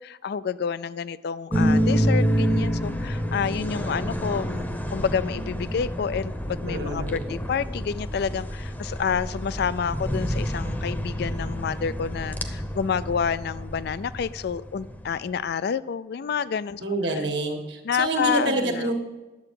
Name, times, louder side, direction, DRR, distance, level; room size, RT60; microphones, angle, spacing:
voice 1, 0.0-16.8 17.8-18.9, left 6 dB, 65° left, 17 dB, 0.4 m, -29 dB
sound 1, 1.5-15.2, equal, 10° left, 0.8 m, -28 dB
voice 2, 6.7-7.2 16.8-18.9, right 2 dB, 70° right, 2 dB, 1.6 m, -27 dB
10.5 x 7.7 x 4.8 m, 1.1 s
head